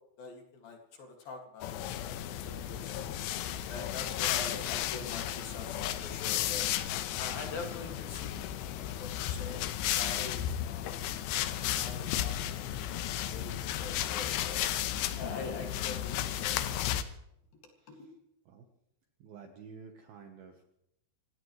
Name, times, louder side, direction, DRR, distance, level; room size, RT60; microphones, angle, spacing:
voice 1, 0.2-1.8 2.2-3.1 3.7-6.7 7.2-11.2 11.7-12.3 12.9-13.0 13.3-14.7 15.1-16.8 17.9-18.1, left 3 dB, 55° left, 2 dB, 3.5 m, -44 dB
sound 1, 1.6-17.0, left 12 dB, 75° left, 2.7 m, -34 dB
voice 2, 17.8-18.1 18.5-18.6 19.2-20.6, right 5 dB, 70° right, 4 dB, 2.4 m, -51 dB
27.0 x 17.0 x 3.2 m, 0.81 s
omnidirectional pair, 5.7 m